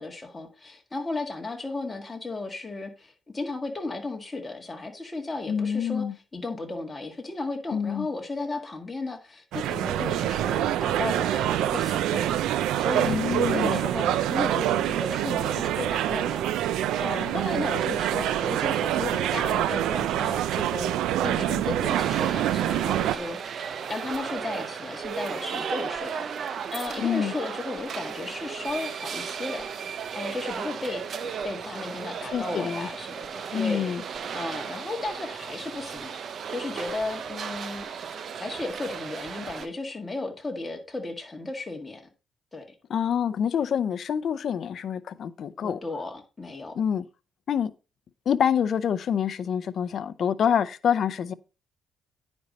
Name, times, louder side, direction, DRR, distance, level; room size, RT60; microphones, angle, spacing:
voice 1, 0.0-6.0 6.3-29.7 30.2-34.0 34.3-37.9 38.4-42.0 42.5-42.7 45.6-46.8, left 2 dB, 20° left, 1.8 m, -35 dB
voice 2, 5.5-6.1 7.7-8.1 13.0-13.8 27.0-27.3 32.3-32.9 33.5-34.0 42.9-45.8 46.7-47.0 47.5-47.7 48.3-51.3, left 8 dB, 60° left, 0.6 m, -26 dB
sound 1, 9.5-23.2, right 12 dB, 85° right, 0.4 m, -26 dB
sound 2, 21.8-39.7, right 7 dB, 55° right, 0.8 m, -35 dB
9.5 x 5.3 x 4.1 m
cardioid pair, 90°, 0 cm